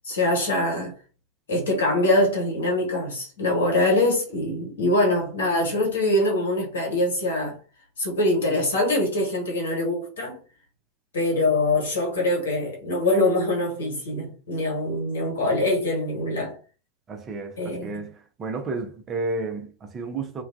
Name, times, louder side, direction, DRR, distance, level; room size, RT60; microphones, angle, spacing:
voice 1, 0.0-0.9 1.5-7.6 8.0-10.4 11.1-16.6 17.6-17.9, left 1 dB, 65° left, 1.2 m, -23 dB
voice 2, 17.1-20.4, right 3 dB, 25° right, 0.6 m, -32 dB
2.3 x 2.2 x 2.5 m
figure-of-eight pair, 85°, 0 cm